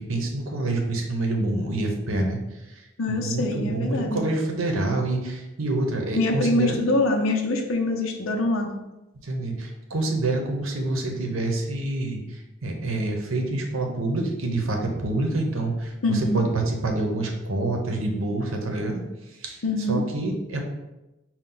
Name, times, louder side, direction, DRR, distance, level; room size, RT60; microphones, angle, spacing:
voice 1, 0.0-2.4 3.1-6.8 9.2-12.2 12.6-19.0 19.4-19.6 19.9-20.6, right 2 dB, 85° right, 2 dB, 0.8 m, -27 dB
voice 2, 3.0-4.2 6.2-8.7 16.0-16.4 19.6-20.0, left 2 dB, 90° left, 2 dB, 0.7 m, -24 dB
5.6 x 2.3 x 3.9 m, 1.0 s
head